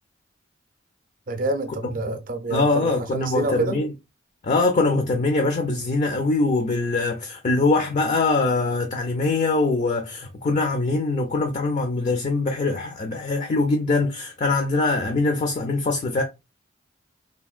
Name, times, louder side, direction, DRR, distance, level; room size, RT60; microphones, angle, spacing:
voice 1, 1.3-3.8, right 2 dB, 45° right, 0.5 m, -27 dB
voice 2, 2.5-3.9 4.4-16.2, left 3 dB, 40° left, 0.4 m, -23 dB
3.3 x 2.1 x 2.4 m
head